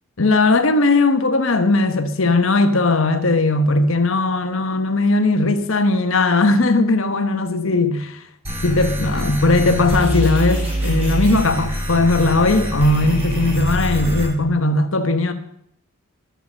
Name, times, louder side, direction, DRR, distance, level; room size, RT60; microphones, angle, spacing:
voice 1, 0.2-8.2 8.6-15.3, left 2 dB, 65° left, 1.1 m, -18 dB
sound 1, 8.4-14.3, equal, 30° right, 5.9 m, -24 dB
12.5 x 6.9 x 7.3 m
head